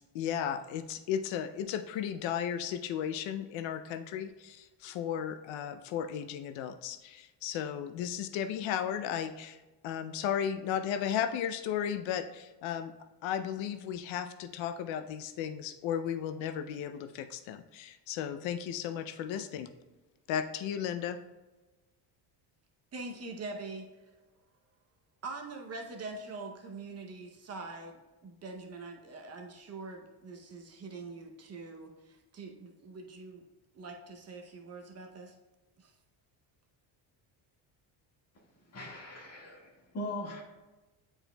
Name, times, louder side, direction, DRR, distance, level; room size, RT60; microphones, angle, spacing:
voice 1, 0.1-9.6 9.8-12.9 13.2-19.7 20.3-21.2, left 9 dB, 85° left, 10 dB, 0.6 m, -35 dB
voice 2, 22.9-23.9 25.2-33.4 33.7-35.3 35.8-35.9, right 3 dB, 35° right, 2 dB, 0.7 m, -44 dB
voice 3, 38.6-40.4, left 1 dB, 35° left, -2 dB, 1.7 m, -40 dB
9.9 x 4.4 x 2.2 m, 1.1 s
cardioid pair, 145°, 45 cm